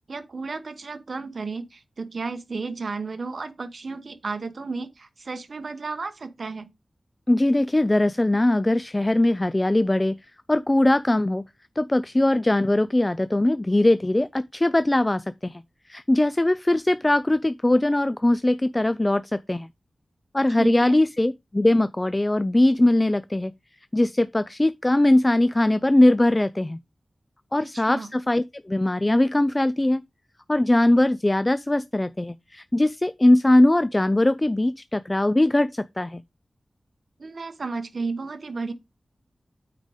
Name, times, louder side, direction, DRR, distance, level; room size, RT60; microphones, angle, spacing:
voice 1, 0.1-6.7 20.6-21.0 27.6-28.1 37.2-38.7, right 4 dB, 65° right, 1.0 m, -33 dB
voice 2, 7.3-10.2 10.5-11.4 11.8-15.6 15.9-19.7 20.3-23.5 23.9-26.8 27.5-30.0 30.5-36.2, left 1 dB, 20° left, 0.3 m, -21 dB
8.9 x 3.7 x 5.0 m
wide cardioid pair, 85°, 0 cm